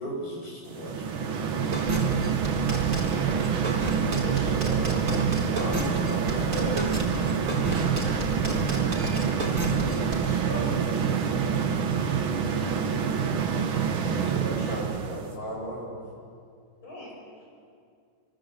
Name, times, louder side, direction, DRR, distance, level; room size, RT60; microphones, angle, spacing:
voice 1, 0.0-1.4 4.2-7.4 10.0-10.7 13.9-16.0, equal, 45° left, -2 dB, 8.5 m, -36 dB
sound 1, 0.7-15.3, right 7 dB, 85° right, 2.3 m, -26 dB
sound 2, 1.7-10.3, right 1 dB, 40° right, 4.0 m, -32 dB
voice 2, 7.0-9.8, right 1 dB, 10° left, -1 dB, 4.9 m, -41 dB
voice 3, 13.6-14.3 16.8-17.4, left 1 dB, 80° left, -2 dB, 7.5 m, -51 dB
27.0 x 26.0 x 8.1 m, 2.3 s
omnidirectional pair, 2.2 m